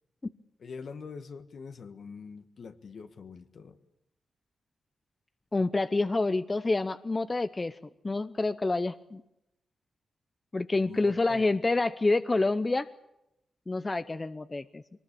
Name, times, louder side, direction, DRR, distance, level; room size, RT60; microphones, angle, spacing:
voice 1, 0.6-3.8 10.8-11.5, left 5 dB, 70° left, 8 dB, 1.6 m, -44 dB
voice 2, 5.5-7.8 8.0-9.2 10.5-12.9 13.7-14.8, left 3 dB, 30° left, 12 dB, 0.8 m, -28 dB
23.5 x 20.0 x 8.7 m, 0.87 s
cardioid pair, 60°, 0 cm